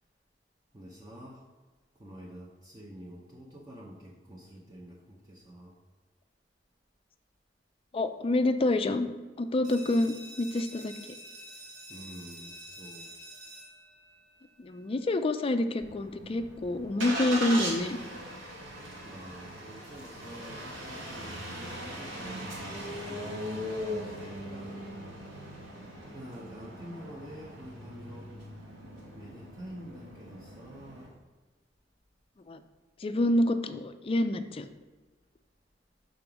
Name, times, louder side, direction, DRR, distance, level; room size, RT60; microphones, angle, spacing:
voice 1, 0.7-1.5 1.9-5.8 11.9-13.1 19.0-24.8 26.1-28.3 29.1-31.2, equal, 20° right, -3 dB, 0.7 m, -47 dB
voice 2, 7.9-9.1 9.4-10.9 14.6-18.0 32.5-32.6 33.0-34.7, left 1 dB, 30° left, 9 dB, 0.4 m, -27 dB
sound 1, 9.6-15.1, right 1 dB, 50° right, 1.7 m, -48 dB
Engine starting, 15.8-31.1, equal, 75° right, 1.6 m, -39 dB
5.3 x 3.8 x 5.9 m, 1.3 s
head